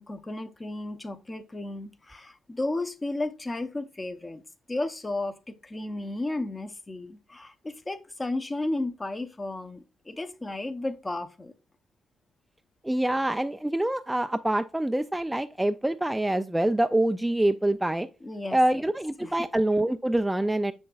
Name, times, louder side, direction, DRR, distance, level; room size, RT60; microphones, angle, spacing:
voice 1, 0.0-4.4 4.7-11.5 18.2-18.8 19.2-19.4, left 2 dB, 20° left, 0.7 m, -33 dB
voice 2, 12.8-18.1 18.5-20.7, right 1 dB, 10° right, 0.3 m, -25 dB
6.6 x 6.3 x 2.3 m
cardioid pair, 90°, 0 cm